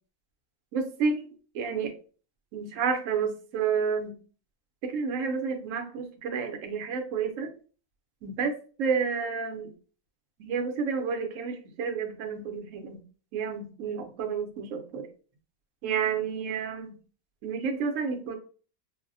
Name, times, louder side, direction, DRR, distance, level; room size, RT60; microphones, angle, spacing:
voice 1, 0.7-1.3 1.5-1.9 2.5-4.1 4.8-7.5 8.2-9.7 10.4-13.0 13.3-15.1 15.8-17.0 17.4-18.4, right 6 dB, 65° right, 5 dB, 0.9 m, -30 dB
3.9 x 2.1 x 2.5 m, 0.39 s
omnidirectional pair, 1.6 m